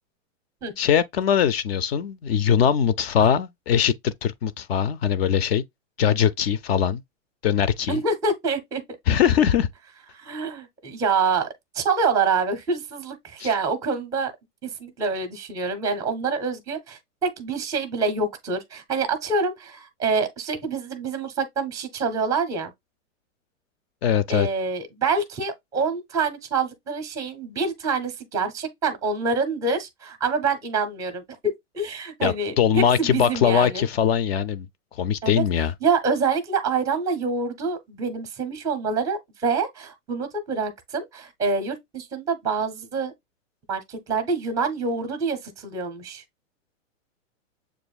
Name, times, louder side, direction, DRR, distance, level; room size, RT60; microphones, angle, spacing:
voice 1, 0.8-5.6 6.0-7.0 7.4-8.0 9.1-9.7 13.4-13.5 24.0-24.5 32.2-34.7 35.0-35.7, left 8 dB, 50° left, 0.5 m, -21 dB
voice 2, 7.9-8.8 10.1-11.5 11.7-14.3 14.6-22.7 24.3-31.2 31.7-33.9 35.2-35.4 35.8-43.1 43.7-46.2, right 4 dB, 10° right, 0.6 m, -26 dB
7.0 x 2.5 x 2.3 m
hypercardioid pair, 145°, 40 cm